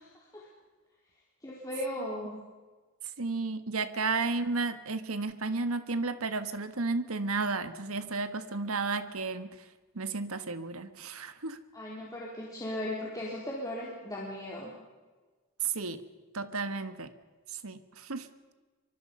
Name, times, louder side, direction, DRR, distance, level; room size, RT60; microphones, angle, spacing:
voice 1, 1.4-2.4 11.7-14.7, left 1 dB, 15° left, -4 dB, 4.0 m, -37 dB
voice 2, 3.2-9.5 9.9-11.6 15.6-16.0 16.3-17.1 17.5-18.3, right 4 dB, 85° right, 11 dB, 1.5 m, -33 dB
25.5 x 23.5 x 5.5 m, 1.3 s
head